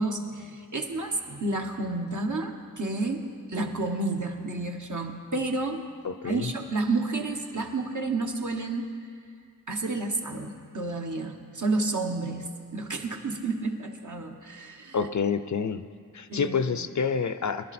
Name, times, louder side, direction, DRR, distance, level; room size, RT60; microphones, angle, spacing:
voice 1, 0.0-5.8 6.2-8.9 9.7-15.0 16.3-16.9, right 2 dB, 65° right, 2 dB, 1.3 m, -30 dB
voice 2, 6.0-6.5 14.9-15.8 16.1-17.7, left 6 dB, 60° left, 12 dB, 0.6 m, -28 dB
20.5 x 12.0 x 4.3 m, 2.2 s
wide cardioid pair, 65°, 33 cm